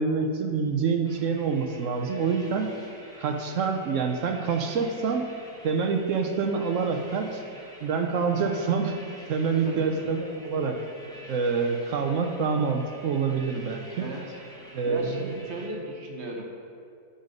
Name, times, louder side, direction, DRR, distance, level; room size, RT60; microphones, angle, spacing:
voice 1, 0.0-2.7 3.2-5.3 5.6-7.4 7.8-8.9 9.3-10.8 11.3-14.1 14.7-15.4, right 5 dB, 65° right, 4 dB, 0.8 m, -26 dB
sound 1, 1.0-15.7, equal, 5° left, 0.8 m, -48 dB
voice 2, 8.2-8.5 9.6-10.0 14.0-14.2 14.9-16.4, right 2 dB, 45° right, 0 dB, 1.1 m, -36 dB
8.9 x 5.3 x 5.2 m, 2.4 s
omnidirectional pair, 1.8 m